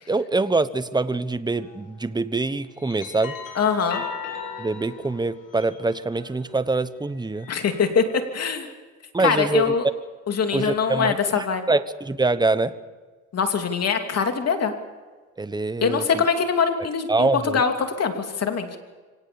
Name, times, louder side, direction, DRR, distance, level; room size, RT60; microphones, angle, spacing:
voice 1, 0.1-3.4 4.6-7.5 9.1-9.8 10.5-12.7 15.4-16.2 17.1-17.6, right 3 dB, 15° right, 14 dB, 1.1 m, -24 dB
sound 1, 1.5-1.8 2.5-6.6 7.2-8.3, left 7 dB, 80° left, 5.7 m, -38 dB
voice 2, 3.6-4.0 7.5-8.0 8.3-8.7 9.2-9.9 10.3-11.7 13.3-14.7 15.8-18.7, left 6 dB, 55° left, 5 dB, 3.0 m, -23 dB
25.0 x 18.0 x 7.1 m, 1.4 s
cardioid pair, 90°, 30 cm